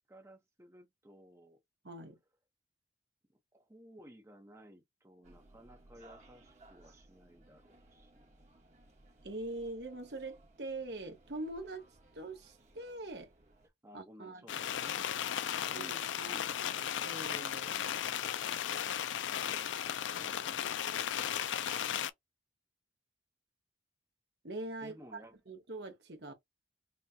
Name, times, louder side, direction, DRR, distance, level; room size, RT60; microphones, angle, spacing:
voice 1, 0.1-1.6 3.3-8.3 13.8-15.1 15.4-16.9 19.9-20.8 24.8-25.4, equal, 15° right, 0.7 m, -57 dB
voice 2, 1.8-2.1 9.2-11.8 12.1-13.3 13.9-14.5 15.7-16.4 17.0-17.8 20.1-20.5 24.4-25.2 25.5-26.3, right 2 dB, 70° right, 1.2 m, -43 dB
sound 1, 5.2-13.7, right 2 dB, 40° right, 1.2 m, -61 dB
sound 2, 14.5-22.1, left 9 dB, 90° left, 0.4 m, -35 dB
5.5 x 2.2 x 2.7 m
head